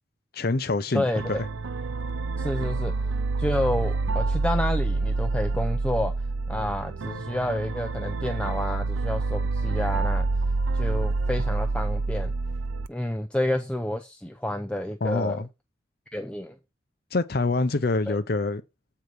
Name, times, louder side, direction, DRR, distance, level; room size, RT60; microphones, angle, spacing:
voice 1, 0.3-1.4 15.0-15.5 17.1-18.6, left 3 dB, 50° left, 0.6 m, -26 dB
voice 2, 0.9-1.4 2.4-3.1 3.4-6.1 6.5-10.3 10.7-12.3 12.9-15.4 16.1-16.6 18.1-18.2, left 1 dB, 5° left, 0.5 m, -29 dB
sound 1, 1.2-12.9, right 3 dB, 90° right, 0.5 m, -27 dB
8.0 x 4.7 x 5.2 m
head